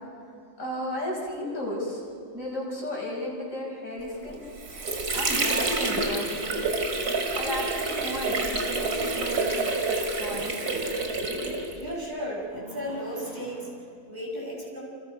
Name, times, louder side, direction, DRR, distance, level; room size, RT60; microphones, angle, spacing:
voice 1, 0.6-2.0 2.3-4.4 5.1-6.4 7.3-10.7, left 1 dB, 55° left, -3 dB, 5.6 m, -34 dB
Water / Sink (filling or washing), 4.3-12.0, right 3 dB, 75° right, 3.0 m, -28 dB
voice 2, 11.8-13.8 14.0-14.8, equal, 25° right, -4 dB, 6.2 m, -34 dB
29.0 x 28.5 x 5.4 m, 2.5 s
omnidirectional pair, 1.7 m